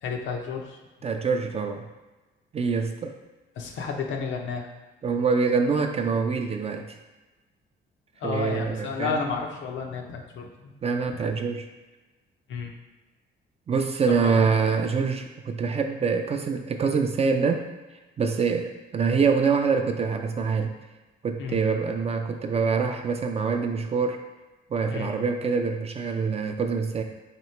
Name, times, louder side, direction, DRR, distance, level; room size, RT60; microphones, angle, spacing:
voice 1, 0.0-0.8 3.6-4.7 8.2-10.7 12.5-12.7 14.2-14.5 21.4-21.6 24.9-25.1, left 5 dB, 75° left, 2 dB, 0.6 m, -31 dB
voice 2, 1.0-1.8 2.5-3.1 5.0-6.9 8.2-9.2 10.8-11.7 13.7-17.7 18.2-20.7 21.2-24.2 24.7-27.0, right 5 dB, 30° right, 5 dB, 0.4 m, -25 dB
3.0 x 2.8 x 4.4 m, 1.2 s
cardioid pair, 90°, 20 cm